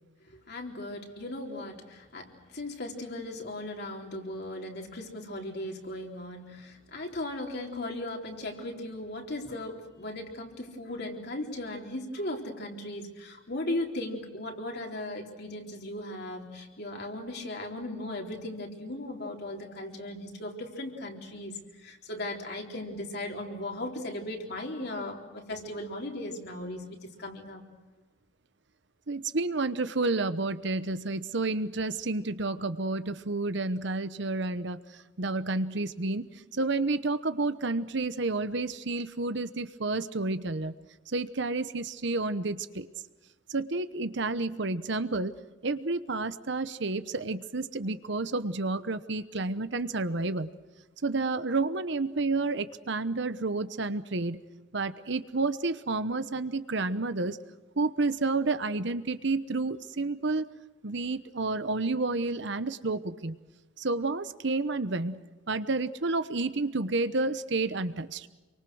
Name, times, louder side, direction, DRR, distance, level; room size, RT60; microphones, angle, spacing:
voice 1, 0.5-21.6 21.8-27.6, left 1 dB, 60° left, 1 dB, 3.9 m, -37 dB
voice 2, 29.1-34.8 35.2-40.7 41.1-42.9 43.5-45.3 45.6-50.5 51.0-54.4 54.7-57.4 57.8-60.4 60.8-63.3 63.8-65.2 65.5-68.3, right 3 dB, 65° right, 12 dB, 1.0 m, -30 dB
28.0 x 24.0 x 6.4 m, 1.2 s
head